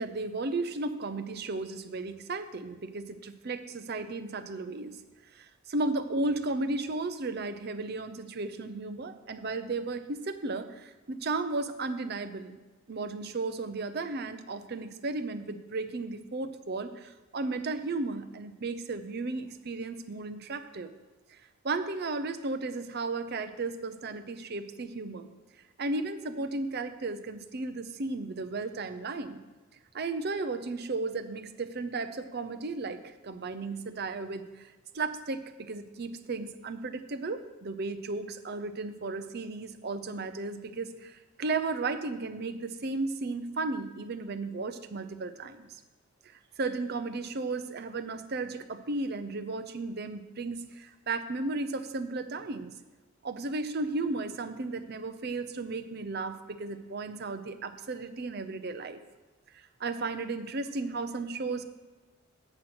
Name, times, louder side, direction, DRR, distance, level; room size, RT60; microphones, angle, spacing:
voice 1, 0.0-5.0 5.3-12.6 12.9-20.9 21.3-21.4 21.6-25.3 25.8-29.4 29.9-45.8 46.6-52.7 53.2-59.0 59.5-61.6, right 3 dB, 50° right, 9 dB, 0.6 m, -34 dB
7.8 x 5.9 x 6.0 m, 1.2 s
head